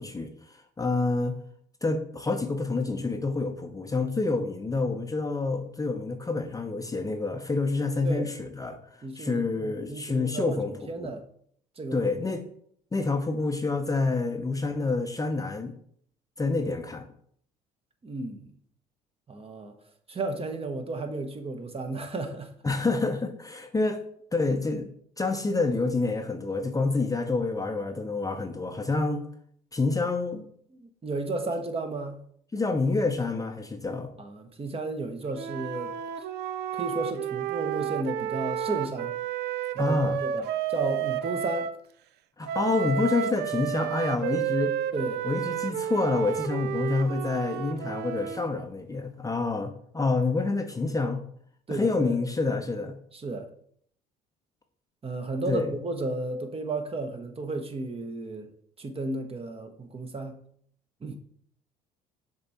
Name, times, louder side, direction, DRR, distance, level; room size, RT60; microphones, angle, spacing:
voice 1, 0.0-1.3 1.8-8.8 9.2-11.1 11.9-12.4 12.9-15.7 16.4-17.0 22.6-24.0 24.3-24.9 25.2-29.3 29.7-30.5 32.5-34.1 39.8-40.2 42.4-44.7 45.2-51.2 51.7-53.0 55.5-55.7, left 3 dB, 15° left, 0.7 m, -28 dB
voice 2, 9.0-11.2 11.8-12.3 18.0-18.6 19.3-19.7 20.1-22.5 30.8-32.2 34.2-35.9 36.7-39.1 39.7-41.7 44.9-45.2 51.7-52.2 53.1-53.5 55.0-58.5 58.8-60.4 61.0-61.2, right 2 dB, 30° right, 1.0 m, -33 dB
Wind instrument woodwind instrument, 35.3-41.7 42.5-48.5, right 10 dB, 55° right, 0.5 m, -31 dB
6.6 x 3.5 x 4.2 m
hypercardioid pair, 60°, 21 cm